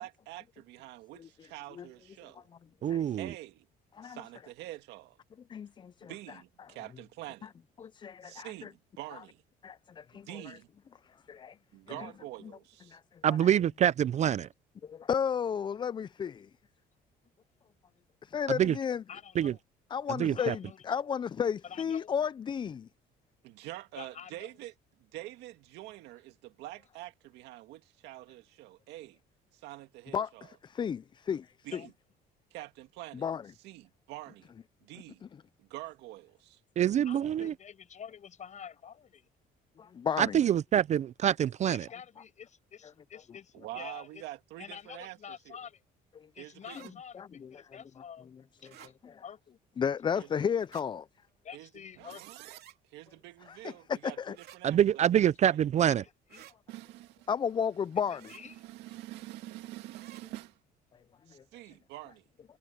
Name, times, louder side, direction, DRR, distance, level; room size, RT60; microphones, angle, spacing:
voice 1, 0.0-2.5 3.2-3.7 4.0-5.2 6.1-7.5 8.2-9.4 10.1-10.7 11.7-13.0 23.4-24.7 25.0-29.2 29.5-30.5 31.6-31.9 32.5-33.3 33.6-34.5 34.8-35.2 35.6-36.6 43.5-45.6 46.4-46.9 50.2-50.3 51.5-51.7 52.0-52.6 52.9-55.6 56.7-57.3 58.5-60.6 61.3-62.2, right 16 dB, 90° right, 2.2 m, -46 dB
voice 2, 2.8-3.3 13.2-14.5 18.5-18.7 19.4-19.5 20.2-20.5 36.8-37.5 40.2-41.8 54.6-56.0, right 10 dB, 45° right, 0.4 m, -26 dB
voice 3, 5.5-6.1 7.8-8.7 9.6-10.6 11.3-11.6 12.0-12.1 12.9-13.0 14.8-16.5 18.2-19.0 19.9-22.9 30.1-31.8 33.1-33.4 39.8-40.4 46.2-46.3 47.1-47.6 48.6-49.2 49.8-51.1 53.5-53.7 54.0-54.4 57.3-58.3 61.3-61.4, left 7 dB, 30° left, 0.4 m, -33 dB
voice 4, 19.1-19.6 20.3-20.8 21.6-22.1 23.9-24.5 31.7-31.9 37.0-39.3 41.7-44.2 44.6-45.8 46.3-48.3 48.6-48.7 49.2-49.6 51.4-52.4 55.9-56.5 58.1-58.6 61.6-61.7, left 8 dB, 45° left, 7.6 m, -48 dB
sound 1, 46.6-46.9 48.6-48.9 50.5-50.9 52.5-52.8 54.3-54.6 56.3-56.6 58.1-58.4 59.9-60.2, right 12 dB, 70° right, 3.1 m, -54 dB
cardioid pair, 110°, 17 cm